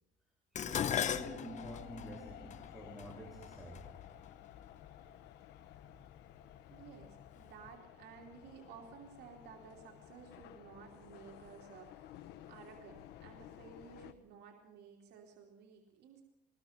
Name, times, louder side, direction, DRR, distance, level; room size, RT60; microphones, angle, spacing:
voice 1, 0.5-3.9, right 1 dB, ahead, -1 dB, 4.1 m, -48 dB
Dishes pots and pans, 0.6-4.9 5.8-6.2 6.6-7.4 7.7-7.8, left 9 dB, 45° left, 0.9 m, -39 dB
sound 1, 0.8-14.1, left 12 dB, 90° left, 1.2 m, -55 dB
voice 2, 6.7-12.2 12.5-16.2, right 6 dB, 80° right, 0 dB, 3.0 m, -55 dB
22.5 x 19.5 x 6.0 m, 0.86 s
cardioid pair, 110°, 17 cm